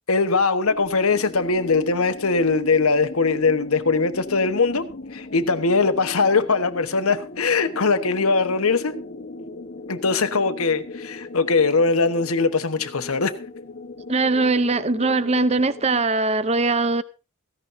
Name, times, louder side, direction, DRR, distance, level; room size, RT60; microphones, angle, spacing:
voice 1, 0.1-4.8 5.1-8.9 9.9-13.3, left 4 dB, 85° left, 1.2 m, -21 dB
sound 1, 0.6-16.0, left 2 dB, 45° left, 1.1 m, -38 dB
voice 2, 14.1-17.0, right 3 dB, 30° right, 0.6 m, -21 dB
17.0 x 15.0 x 2.7 m
head